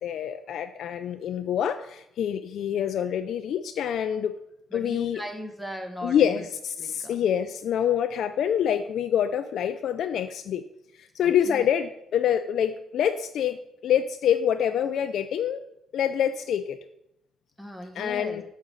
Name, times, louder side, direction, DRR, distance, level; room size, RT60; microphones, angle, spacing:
voice 1, 0.0-4.4 4.7-5.2 6.0-10.6 11.0-13.6 13.8-15.6 15.9-16.8 18.0-18.4, left 9 dB, 70° left, 7 dB, 0.4 m, -26 dB
voice 2, 4.7-6.5 6.8-7.2 11.2-11.6 17.6-18.4, equal, 5° right, 4 dB, 1.0 m, -38 dB
6.3 x 4.8 x 5.5 m, 0.81 s
cardioid pair, 90°, 0 cm